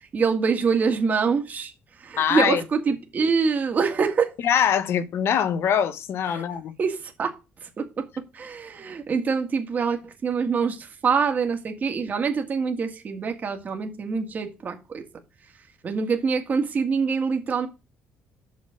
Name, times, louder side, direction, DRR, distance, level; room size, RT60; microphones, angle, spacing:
voice 1, 0.1-1.7 2.0-4.3 6.3-6.4 6.8-7.3 7.8-8.1 8.3-15.0 15.8-17.7, right 5 dB, 35° right, 1.8 m, -25 dB
voice 2, 2.2-2.6 4.4-6.7, left 8 dB, 55° left, 1.1 m, -23 dB
7.0 x 6.6 x 6.5 m
cardioid pair, 145°, 5 cm